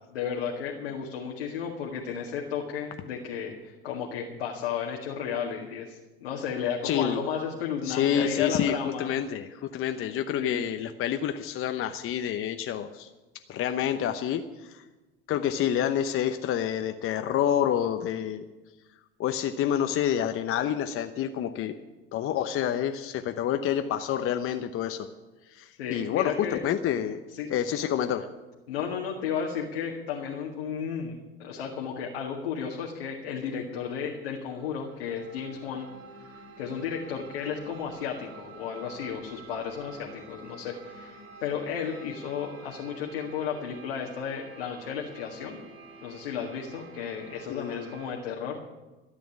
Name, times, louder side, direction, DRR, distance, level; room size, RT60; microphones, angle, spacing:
voice 1, 0.1-9.1 10.4-10.6 25.8-26.6 27.4-27.5 28.7-35.9 36.2-45.6 46.0-48.6, left 7 dB, 80° left, -1 dB, 2.0 m, -33 dB
voice 2, 6.8-7.2 7.8-13.1 13.5-14.8 15.3-18.4 19.2-21.7 22.1-25.1 25.5-27.2 27.5-28.3 47.5-47.9, left 9 dB, 45° left, 8 dB, 0.9 m, -28 dB
sound 1, 33.4-48.1, right 3 dB, 50° right, 4.2 m, -49 dB
13.0 x 8.4 x 9.6 m, 1.1 s
hypercardioid pair, 75°, 29 cm